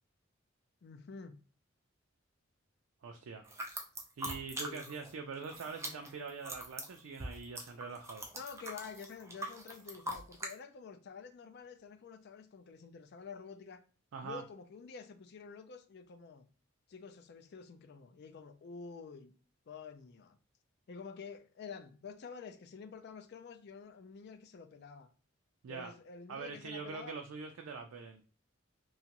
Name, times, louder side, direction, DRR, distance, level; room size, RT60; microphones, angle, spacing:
voice 1, 0.8-1.4 4.6-4.9 8.3-13.8 14.2-16.5 16.9-19.3 19.7-20.4 20.9-25.1 25.7-27.2, left 5 dB, 55° left, 0.4 m, -49 dB
voice 2, 3.0-3.5 4.2-8.3 14.1-14.4 25.6-25.9 26.3-28.2, right 5 dB, 85° right, 0.4 m, -44 dB
sound 1, 3.4-5.1 5.4-10.5, right 1 dB, 15° right, 0.5 m, -43 dB
2.9 x 2.3 x 2.8 m
head